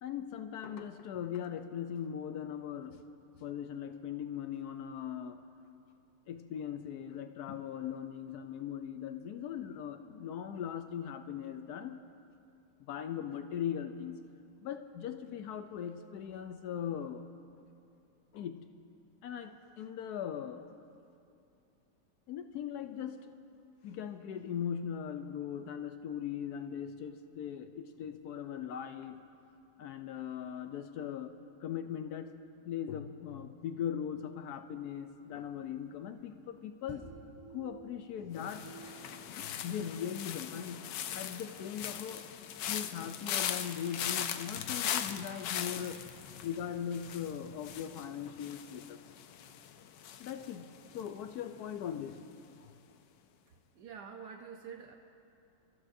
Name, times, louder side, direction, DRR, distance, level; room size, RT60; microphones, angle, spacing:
voice 1, 0.0-3.0 3.4-5.4 6.3-12.0 12.8-14.2 14.6-17.3 18.3-18.7 19.2-20.7 22.3-23.3 23.8-29.2 29.8-32.3 32.6-37.0 37.5-38.7 39.4-40.9 41.1-42.3 42.7-46.1 46.4-49.0 50.2-52.2, left 9 dB, 70° left, 7 dB, 1.0 m, -39 dB
sound 1, 34.9-40.2, right 4 dB, 20° right, 3.4 m, -53 dB
sound 2, 38.4-51.4 51.7-52.1, left 9 dB, 90° left, 1.3 m, -40 dB
voice 2, 53.7-54.9, right 6 dB, 75° right, 4 dB, 1.3 m, -46 dB
29.5 x 14.0 x 2.6 m, 2.6 s
omnidirectional pair, 1.9 m